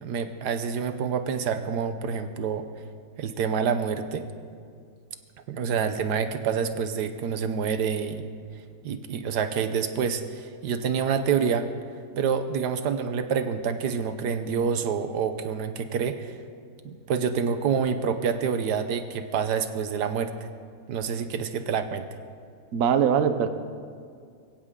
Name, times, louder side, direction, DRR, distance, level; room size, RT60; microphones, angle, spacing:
voice 1, 0.0-2.7 3.2-4.3 5.5-8.2 8.8-11.7 12.2-16.4 16.8-20.3 20.9-22.1, right 6 dB, 85° right, 9 dB, 1.4 m, -27 dB
voice 2, 22.7-23.5, right 7 dB, 60° right, 10 dB, 1.2 m, -21 dB
22.0 x 16.5 x 3.8 m, 2.2 s
omnidirectional pair, 1.7 m